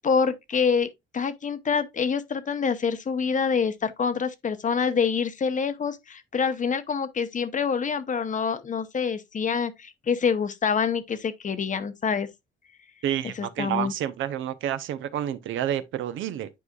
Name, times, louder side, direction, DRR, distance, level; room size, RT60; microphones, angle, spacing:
voice 1, 0.0-12.3 13.4-13.9, left 6 dB, 40° left, 0.8 m, -26 dB
voice 2, 13.0-16.5, right 11 dB, 80° right, 0.7 m, -29 dB
9.2 x 4.8 x 2.3 m
cardioid pair, 90°, 20 cm